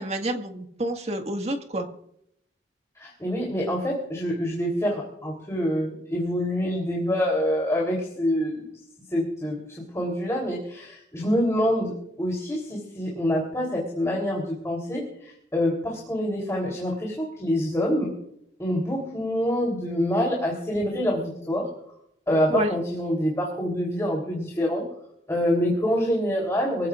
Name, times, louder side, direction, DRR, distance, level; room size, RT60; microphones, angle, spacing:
voice 1, 0.0-1.9 22.5-22.7, right 1 dB, 40° right, 4 dB, 1.8 m, -28 dB
voice 2, 3.0-8.7 9.1-18.1 18.6-21.7 22.3-24.8 25.3-26.9, equal, 15° left, -2 dB, 3.5 m, -26 dB
24.5 x 16.0 x 2.5 m, 0.73 s
head